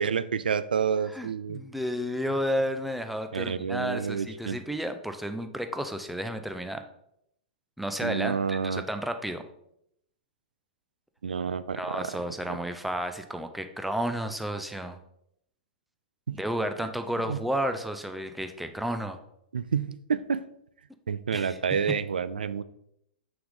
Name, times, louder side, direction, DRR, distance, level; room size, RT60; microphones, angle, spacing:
voice 1, 0.0-1.6 3.3-4.6 8.0-8.8 11.2-12.2 12.5-12.6 16.3-16.4 17.3-17.4 19.5-20.4 21.1-22.6, right 6 dB, 85° right, 15 dB, 0.4 m, -29 dB
voice 2, 1.1-6.9 7.8-9.4 11.7-15.0 16.3-19.2 21.3-21.6 21.9-22.0, equal, ahead, 7 dB, 0.6 m, -32 dB
5.9 x 4.9 x 3.7 m, 0.75 s
hypercardioid pair, 115°, 5 cm